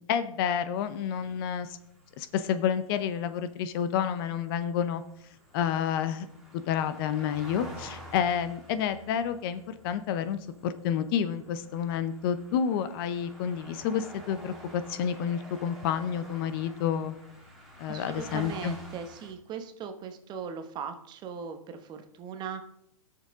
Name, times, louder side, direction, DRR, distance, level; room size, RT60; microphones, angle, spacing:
voice 1, 0.0-1.8 2.2-5.0 5.5-6.3 6.5-17.2 17.8-18.8, left 8 dB, 40° left, 12 dB, 0.7 m, -29 dB
sound 1, 0.8-19.3, equal, ahead, 2.3 m, -50 dB
voice 2, 17.9-22.6, right 6 dB, 25° right, 7 dB, 1.0 m, -39 dB
16.5 x 6.6 x 3.6 m, 0.76 s
hypercardioid pair, 135°, 18 cm